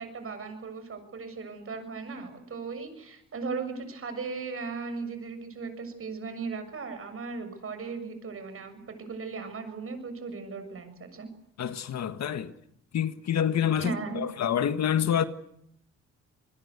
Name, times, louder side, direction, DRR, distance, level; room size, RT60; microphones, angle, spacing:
voice 1, 0.0-11.3 13.8-14.2, right 4 dB, 45° right, 7.2 m, -37 dB
voice 2, 11.6-12.6 12.9-15.2, left 9 dB, 60° left, 1.7 m, -27 dB
26.5 x 21.0 x 8.3 m
cardioid pair, 90°, 30 cm